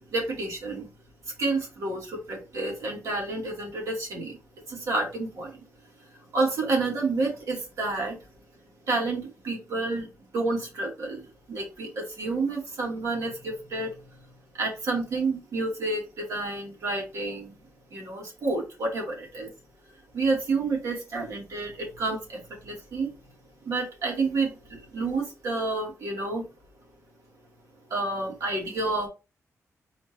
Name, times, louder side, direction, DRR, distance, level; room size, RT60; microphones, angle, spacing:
voice 1, 0.1-0.9 1.3-4.4 4.7-5.7 6.3-8.2 8.9-10.1 10.3-11.2 11.5-14.0 14.5-17.6 17.9-19.5 20.1-23.1 23.6-26.4 27.9-29.1, right 3 dB, 70° right, 2.2 m, -29 dB
4.3 x 2.8 x 4.3 m
wide cardioid pair, 180°, 6 cm